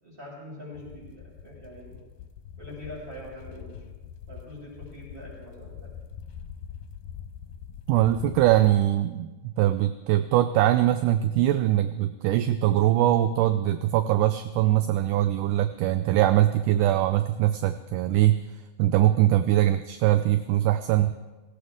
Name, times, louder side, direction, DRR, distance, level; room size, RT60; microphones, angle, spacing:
voice 1, 0.0-2.0 2.6-3.8 4.3-5.9, left 1 dB, 15° right, -4 dB, 5.8 m, -43 dB
sound 1, 0.7-8.8, left 8 dB, 80° left, 2.3 m, -44 dB
voice 2, 7.9-18.4 18.8-21.2, right 13 dB, 80° right, 10 dB, 1.9 m, -22 dB
17.5 x 17.0 x 3.7 m, 1.2 s
omnidirectional pair, 4.0 m